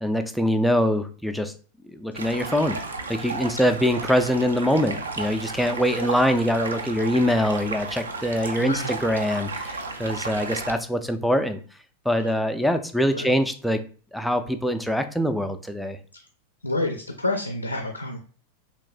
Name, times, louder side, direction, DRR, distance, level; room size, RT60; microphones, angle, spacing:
voice 1, 0.0-1.5 1.9-2.8 3.1-11.6 12.1-13.8 14.1-16.0, equal, ahead, 0.3 m, -23 dB
Stream, 2.1-10.7, right 3 dB, 75° right, 0.4 m, -33 dB
voice 2, 8.6-8.9 12.2-12.4 13.1-13.4 16.1-16.3 16.6-18.2, left 2 dB, 85° left, 0.3 m, -29 dB
3.1 x 2.8 x 2.3 m
figure-of-eight pair, 90°, 0 cm